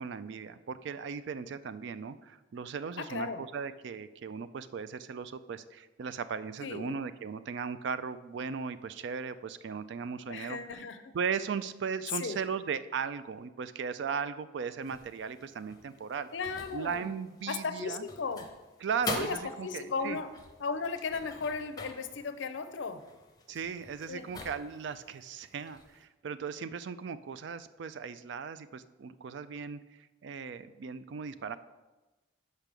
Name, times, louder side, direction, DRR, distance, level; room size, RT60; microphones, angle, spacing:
voice 1, 0.0-10.6 11.1-16.3 16.7-18.0 18.8-20.2 23.5-29.8 30.2-31.5, right 6 dB, 60° right, 13 dB, 0.3 m, -37 dB
voice 2, 3.0-3.4 6.6-7.0 10.3-11.1 12.1-12.4 16.3-17.1 17.5-18.5 19.2-20.3 20.6-23.1 24.1-24.3, left 5 dB, 65° left, 10 dB, 0.5 m, -36 dB
sound 1, 14.8-26.0, left 3 dB, 20° left, 0.6 m, -45 dB
5.5 x 5.2 x 6.1 m, 1.1 s
head